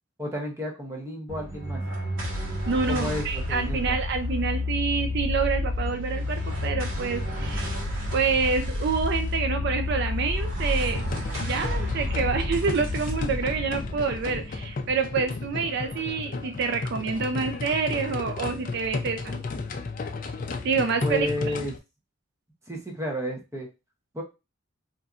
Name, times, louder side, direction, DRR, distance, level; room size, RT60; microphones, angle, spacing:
voice 1, 0.2-1.9 2.9-4.0 21.0-21.7 22.7-23.7 24.1-24.2, left 1 dB, 15° right, 1 dB, 0.6 m, -32 dB
sound 1, 1.3-15.9, left 2 dB, 75° right, 1.1 m, -30 dB
voice 2, 2.7-7.8 8.1-11.0 11.4-19.4 20.6-21.5, right 5 dB, 55° right, 7 dB, 0.3 m, -27 dB
sound 2, 10.9-21.8, left 3 dB, 40° left, 0.4 m, -34 dB
4.0 x 2.5 x 2.3 m, 0.27 s
head